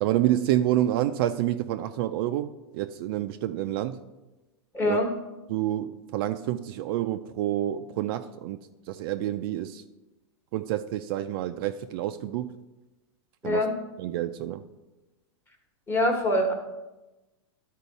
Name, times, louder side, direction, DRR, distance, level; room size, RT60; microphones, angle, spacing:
voice 1, 0.0-4.0 4.8-5.0 5.5-8.6 8.9-9.8 10.5-12.5 13.4-13.6 14.0-14.6, right 13 dB, 50° right, 9 dB, 0.4 m, -28 dB
voice 2, 4.7-5.1 13.4-13.7 15.9-16.5, left 1 dB, 15° left, 2 dB, 1.2 m, -24 dB
12.0 x 4.5 x 4.1 m, 1.1 s
supercardioid pair, 145°, 16 cm